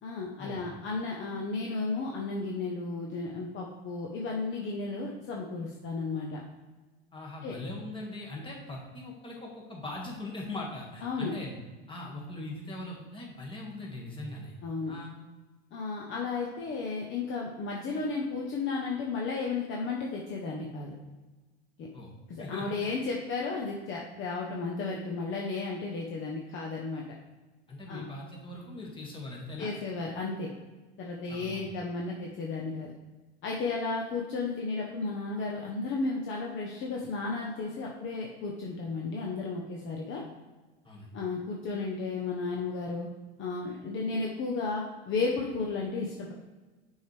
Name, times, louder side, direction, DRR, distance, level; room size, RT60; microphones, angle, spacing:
voice 1, 0.0-6.4 7.4-7.6 11.0-11.3 14.6-14.9 15.7-20.9 21.8-21.9 22.3-27.0 27.9-28.0 29.6-30.5 31.0-32.9 33.4-40.2 41.1-43.1 43.4-46.3, left 4 dB, 40° left, -1 dB, 1.0 m, -33 dB
voice 2, 7.1-11.5 11.9-14.6 14.9-15.1 21.9-22.1 22.4-22.9 27.7-29.7 31.3-31.7 40.8-41.1, left 2 dB, 15° left, -2 dB, 2.0 m, -41 dB
6.3 x 4.7 x 3.4 m, 1.2 s
hypercardioid pair, 95°, 31 cm